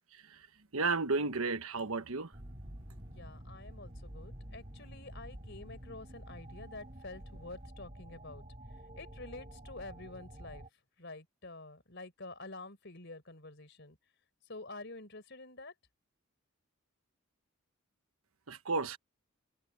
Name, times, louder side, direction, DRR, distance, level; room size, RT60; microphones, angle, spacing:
voice 1, 0.7-2.3 2.6-2.8 18.5-19.0, right 3 dB, 75° right, 1.3 m, -33 dB
sound 1, 2.3-10.7, right 1 dB, 30° right, 2.6 m, -49 dB
voice 2, 2.9-8.4 9.0-10.6 11.0-14.0 14.5-15.7, left 2 dB, 50° left, 4.2 m, -48 dB
head